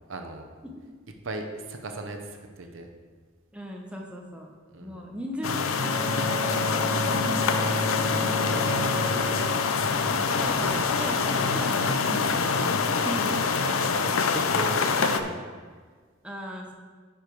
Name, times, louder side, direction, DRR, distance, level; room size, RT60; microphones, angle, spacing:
voice 1, 0.1-0.5 1.2-2.9 4.7-5.0 8.6-9.3 13.0-15.4, right 2 dB, 70° right, 4 dB, 0.9 m, -37 dB
voice 2, 3.5-4.5 4.8-8.3 10.2-13.3 16.2-16.7, equal, 5° right, 0 dB, 0.9 m, -37 dB
sound 1, 5.4-15.2, left 5 dB, 80° left, 0.5 m, -25 dB
Bowed string instrument, 5.7-10.7, equal, 35° left, 1.6 m, -32 dB
sound 2, 8.4-13.5, right 2 dB, 30° right, 0.4 m, -43 dB
9.9 x 5.0 x 4.6 m, 1.5 s
head